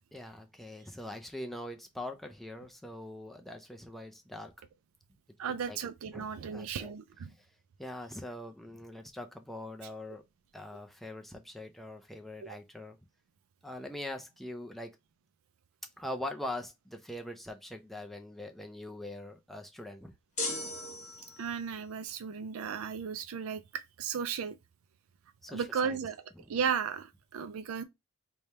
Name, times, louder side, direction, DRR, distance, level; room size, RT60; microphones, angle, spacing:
voice 1, 0.1-4.5 5.4-5.8 6.1-6.9 7.4-7.5 7.8-10.2 10.5-13.0 13.6-14.9 16.0-20.1 25.4-26.0 26.4-26.5, left 1 dB, ahead, 0.4 m, -42 dB
voice 2, 5.4-7.3 12.5-12.6 21.4-24.5 25.5-26.2 26.5-27.8, right 7 dB, 70° right, 0.4 m, -35 dB
sound 1, 20.4-21.7, left 2 dB, 35° left, 1.1 m, -37 dB
3.3 x 2.3 x 4.1 m
head